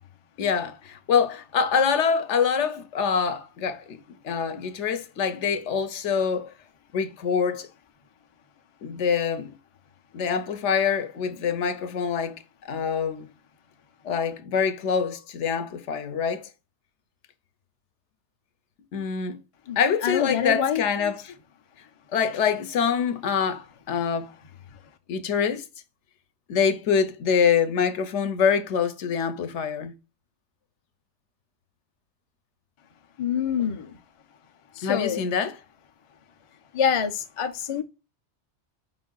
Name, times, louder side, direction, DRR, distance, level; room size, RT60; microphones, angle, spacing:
voice 1, 0.4-4.0 4.2-6.5 6.9-7.7 8.8-9.5 10.1-13.3 14.0-16.5 18.9-19.4 19.8-21.3 22.1-24.3 25.1-25.6 26.5-29.9 34.8-35.6, left 6 dB, 75° left, 1.0 m, -25 dB
voice 2, 20.0-21.1 33.2-33.9 34.8-35.2 36.7-37.8, left 8 dB, 40° left, 0.4 m, -26 dB
5.5 x 2.6 x 3.8 m
omnidirectional pair, 1.2 m